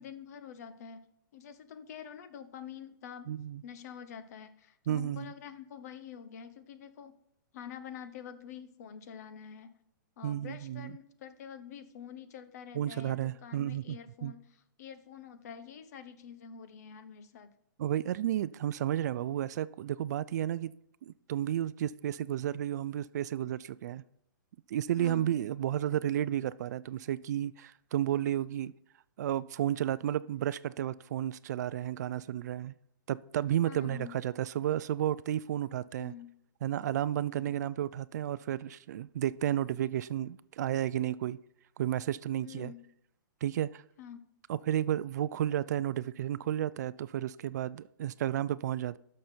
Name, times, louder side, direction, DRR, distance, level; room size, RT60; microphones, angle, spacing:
voice 1, 0.0-3.3 3.6-7.1 7.5-9.7 10.2-17.5 25.0-25.3 33.7-34.2 36.0-36.3 37.3-37.5 42.4-42.8 44.0-44.3, left 8 dB, 50° left, 1.0 m, -47 dB
voice 2, 3.3-3.6 4.9-5.3 10.2-10.9 12.7-14.0 14.2-14.3 17.8-20.7 21.0-24.0 24.7-28.7 29.2-32.7 33.1-36.1 36.6-41.4 41.8-42.7 43.4-43.8 44.5-49.0, right 11 dB, 55° right, 0.3 m, -32 dB
12.0 x 6.4 x 4.4 m
hypercardioid pair, 160°, 11 cm